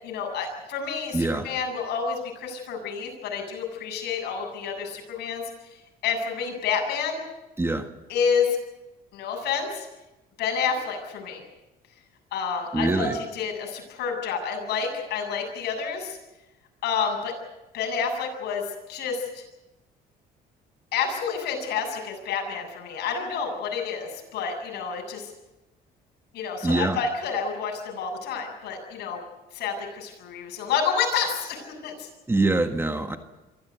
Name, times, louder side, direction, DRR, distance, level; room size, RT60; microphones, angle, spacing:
voice 1, 0.0-5.4 6.0-7.2 8.1-8.6 9.1-9.9 10.4-11.4 12.3-16.2 16.8-17.3 17.7-19.4 20.9-25.3 26.3-29.2 29.5-32.1, left 6 dB, 75° left, 1 dB, 7.8 m, -29 dB
voice 2, 1.1-1.5 7.6-7.9 12.7-13.2 26.6-27.0 32.3-33.2, right 2 dB, 15° right, 7 dB, 1.6 m, -24 dB
24.0 x 15.0 x 9.3 m, 1.0 s
cardioid pair, 110°, 17 cm